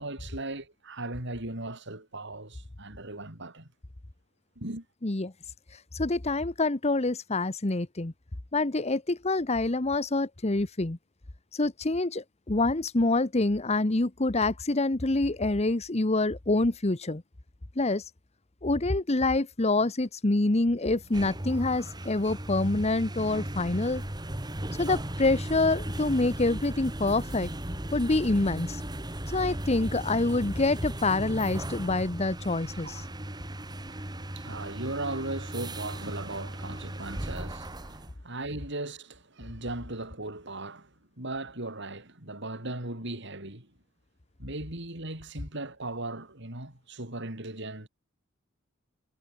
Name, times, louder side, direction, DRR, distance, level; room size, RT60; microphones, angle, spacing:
voice 1, 0.0-3.7 4.6-4.8 32.8-40.9 41.2-43.7 44.4-47.9, right 2 dB, 55° right, 5.0 m, -38 dB
voice 2, 5.0-5.3 5.9-8.1 8.5-11.0 11.5-17.2 17.8-18.0 18.6-24.0 24.8-27.5 27.9-28.8 29.3-33.0, left 2 dB, 30° left, 1.0 m, -26 dB
sound 1, 21.0-38.1, right 1 dB, 20° right, 2.1 m, -36 dB
head